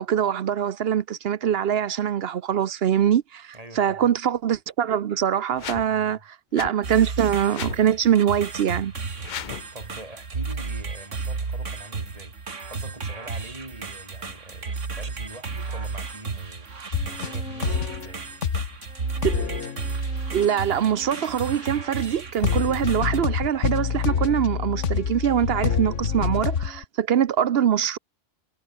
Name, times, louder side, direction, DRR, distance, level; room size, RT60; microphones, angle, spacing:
voice 1, 0.0-8.9 19.2-19.6 20.3-28.0, right 9 dB, 60° right, 0.8 m, -23 dB
voice 2, 3.5-4.0 5.9-6.2 9.7-12.4 12.7-16.7 17.1-18.3, right 1 dB, 30° right, 4.3 m, -44 dB
sound 1, 5.5-5.9 6.5-6.7 7.5-7.8 9.2-9.7, left 9 dB, 50° left, 0.6 m, -35 dB
sound 2, 6.8-23.2, right 4 dB, 85° right, 2.6 m, -33 dB
sound 3, 16.9-18.1 18.4-18.8 19.2-21.7 22.0-22.1 22.4-26.8, left 7 dB, 80° left, 1.6 m, -27 dB
omnidirectional pair, 1.2 m